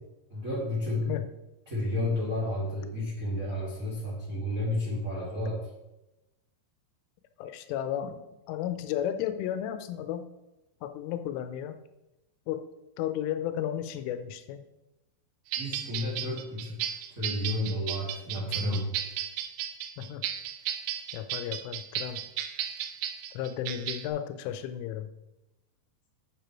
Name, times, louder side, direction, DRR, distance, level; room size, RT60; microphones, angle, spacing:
voice 1, 0.3-1.1 1.7-5.6 15.5-19.0, left 1 dB, 50° right, -5 dB, 0.9 m, -31 dB
voice 2, 7.4-8.2 8.5-10.2 10.8-11.8 12.5-12.6 13.0-14.6 20.0-20.2 21.1-22.2 23.3-25.1, left 10 dB, 85° left, 9 dB, 3.2 m, -33 dB
sound 1, 15.5-24.1, right 10 dB, 90° right, 3.3 m, -34 dB
8.1 x 6.9 x 4.6 m, 0.96 s
omnidirectional pair, 5.6 m